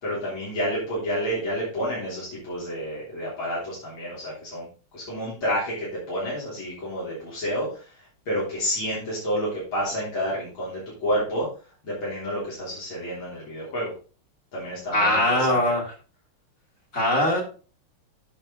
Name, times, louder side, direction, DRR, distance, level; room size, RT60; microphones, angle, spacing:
voice 1, 0.0-4.7 4.9-7.9 8.3-11.5 11.8-13.9 14.5-15.6, equal, 65° left, -8 dB, 4.3 m, -29 dB
voice 2, 14.9-15.8 16.9-17.4, left 1 dB, 40° left, 0 dB, 2.6 m, -21 dB
8.7 x 6.7 x 3.8 m, 0.37 s
omnidirectional pair, 2.3 m